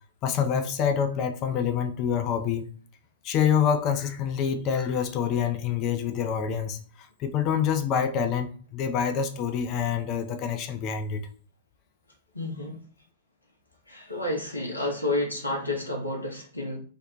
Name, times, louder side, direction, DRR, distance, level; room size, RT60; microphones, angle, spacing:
voice 1, 0.2-2.7 3.2-11.2, left 7 dB, 35° left, 0.4 m, -26 dB
voice 2, 12.3-12.8 13.9-16.8, left 2 dB, 85° left, 0.6 m, -30 dB
2.5 x 2.0 x 2.9 m
figure-of-eight pair, 105°, 0 cm